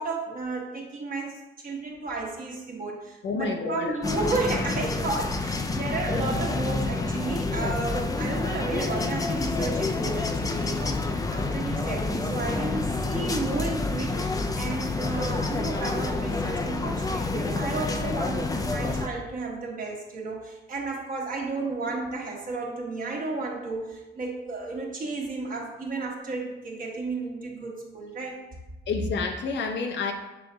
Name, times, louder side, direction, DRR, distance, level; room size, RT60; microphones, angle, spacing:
voice 1, 0.0-28.4, right 3 dB, 45° right, -1 dB, 1.1 m, -33 dB
voice 2, 3.2-3.9 28.9-30.1, left 4 dB, 65° left, 4 dB, 0.6 m, -29 dB
sound 1, 4.0-19.1, left 3 dB, 20° left, 0.3 m, -28 dB
6.1 x 3.8 x 2.2 m, 1.0 s
cardioid pair, 90°, 20 cm